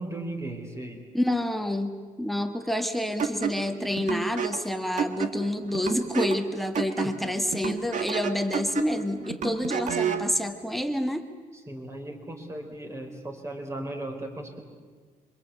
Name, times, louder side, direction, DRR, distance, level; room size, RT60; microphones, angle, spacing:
voice 1, 0.0-1.0 6.9-7.1 11.7-14.6, right 1 dB, 20° right, 3 dB, 4.3 m, -36 dB
voice 2, 1.1-1.9 2.2-11.3, left 1 dB, ahead, 7 dB, 1.7 m, -28 dB
sound 1, 3.2-10.3, right 7 dB, 60° right, 1.7 m, -31 dB
26.5 x 25.0 x 8.4 m, 1.5 s
wide cardioid pair, 155°, 14 cm